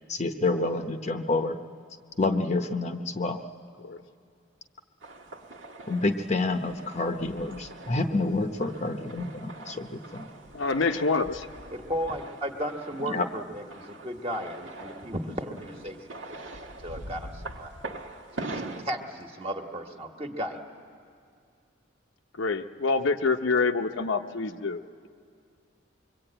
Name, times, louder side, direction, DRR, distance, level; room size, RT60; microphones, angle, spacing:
voice 1, 0.1-1.6 2.2-3.4 5.9-10.3 13.1-13.3, left 2 dB, 35° left, 7 dB, 0.8 m, -28 dB
sound 1, 5.0-18.8, right 2 dB, 75° right, 1.4 m, -43 dB
voice 2, 10.5-11.5 22.4-25.1, left 4 dB, 75° left, 6 dB, 0.8 m, -26 dB
voice 3, 11.7-17.7 18.5-20.6, equal, 30° right, 3 dB, 1.5 m, -35 dB
24.0 x 23.0 x 8.9 m, 2.3 s
head